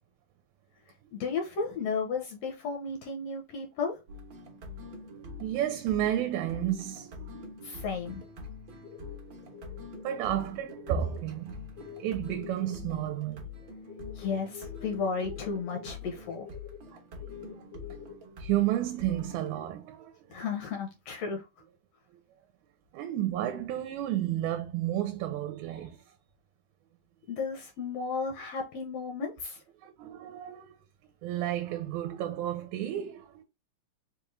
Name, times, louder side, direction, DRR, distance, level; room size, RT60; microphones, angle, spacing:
voice 1, 1.1-4.0 7.6-8.2 14.1-16.5 20.3-21.5 27.3-29.6, left 5 dB, 75° left, 1.5 m, -33 dB
sound 1, 4.1-19.5, left 3 dB, 60° right, 1.3 m, -45 dB
voice 2, 4.8-7.6 9.5-9.6 10.0-11.7 12.0-13.5 15.2-15.4 16.9-18.0 18.4-20.4 22.1-22.2 22.9-26.1 29.8-30.8 31.2-33.4, right 12 dB, 80° right, 1.9 m, -32 dB
sound 2, 8.8-10.3 10.7-11.2 11.8-18.2 18.9-19.2, left 9 dB, 90° left, 2.4 m, -47 dB
5.0 x 2.4 x 3.0 m
omnidirectional pair, 3.5 m